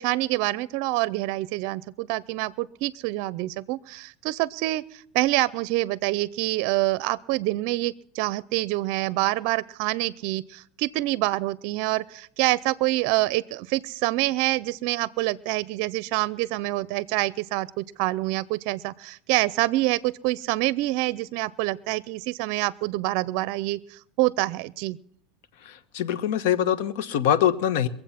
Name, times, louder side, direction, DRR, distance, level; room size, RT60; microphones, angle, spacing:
voice 1, 0.0-25.0, right 19 dB, 60° right, 0.5 m, -26 dB
voice 2, 25.7-27.9, left 10 dB, 70° left, 1.1 m, -24 dB
22.5 x 7.8 x 5.8 m
supercardioid pair, 130°, 0 cm